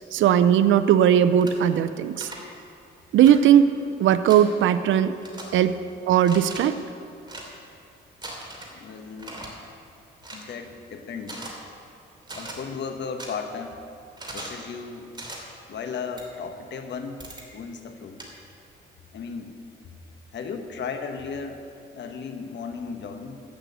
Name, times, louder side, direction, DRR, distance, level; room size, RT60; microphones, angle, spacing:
voice 1, 0.1-2.3 3.1-3.7 4.0-5.2 5.5-5.8 6.1-6.8, right 10 dB, 75° right, 12 dB, 0.5 m, -18 dB
sound 1, 1.4-1.5 2.2-2.4 3.3-3.4 4.3-4.4 5.2-5.4 6.2-6.6 7.2-7.5 8.2-8.7 9.2-9.5 10.2-10.4 11.2-11.5 12.2-12.6 13.2-13.3 14.2-14.6 15.1-15.4 16.2-16.3 17.2-17.4 18.2-18.3, right 2 dB, 20° right, 2.7 m, -38 dB
voice 2, 8.7-9.4 10.3-11.5 12.4-13.7 14.3-15.1 15.7-17.2 17.5-18.2 19.1-19.6 20.3-21.6 21.9-23.4, left 5 dB, 60° left, 6 dB, 1.3 m, -35 dB
14.0 x 6.2 x 8.1 m, 2.6 s
cardioid pair, 90°, 20 cm